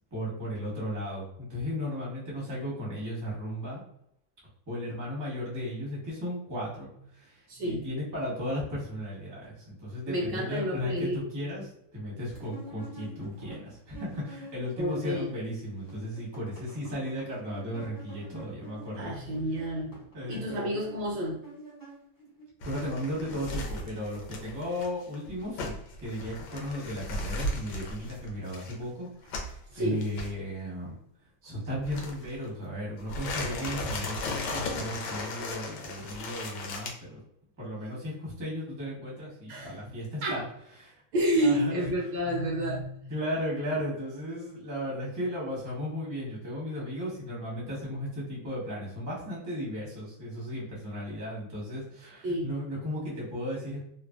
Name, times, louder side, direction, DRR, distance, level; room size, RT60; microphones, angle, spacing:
voice 1, 0.1-3.8 4.7-19.1 20.1-20.7 22.6-29.1 29.4-31.0 31.4-37.2 37.6-40.4 40.8-40.9 41.3-41.9 43.1-53.8, equal, 15° right, -6 dB, 0.6 m, -35 dB
voice 2, 7.5-7.8 10.1-11.2 13.4-13.6 14.8-15.2 19.0-20.0 20.3-21.4 29.7-30.1 39.5-39.7 40.2-40.4 41.1-43.1 52.2-52.5, equal, 70° right, -2 dB, 1.2 m, -29 dB
sound 1, 12.3-15.5 15.8-22.4, right 2 dB, 25° left, 0.4 m, -48 dB
sound 2, 22.6-29.6 30.0-30.3 31.8-32.5 33.0-36.9, left 2 dB, 70° left, 1.1 m, -36 dB
3.2 x 2.1 x 2.4 m, 0.72 s
omnidirectional pair, 2.2 m